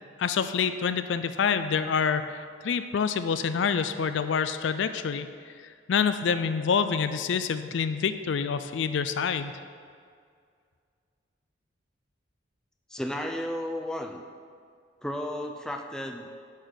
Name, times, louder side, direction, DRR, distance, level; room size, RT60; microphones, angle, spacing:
voice 1, 0.2-5.3 5.9-9.5, left 6 dB, 70° left, 11 dB, 0.4 m, -27 dB
voice 2, 12.9-14.2 15.0-16.3, left 1 dB, 5° left, 3 dB, 0.4 m, -33 dB
9.7 x 4.0 x 6.4 m, 2.1 s
head